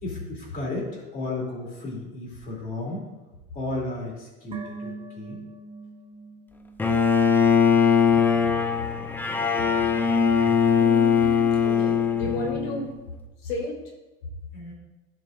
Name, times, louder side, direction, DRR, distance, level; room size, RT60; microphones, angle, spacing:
voice 1, 0.0-3.1 3.5-5.4 14.5-14.7, left 2 dB, 30° left, -2 dB, 2.7 m, -34 dB
sound 1, 4.5-8.2, right 4 dB, 15° right, 0.8 m, -41 dB
Bowed string instrument, 6.8-12.9, left 6 dB, 5° left, 0.4 m, -21 dB
voice 2, 10.8-12.9 13.4-13.8, left 2 dB, 80° left, 0 dB, 2.8 m, -33 dB
13.5 x 5.4 x 2.5 m, 1.1 s
supercardioid pair, 135°, 30 cm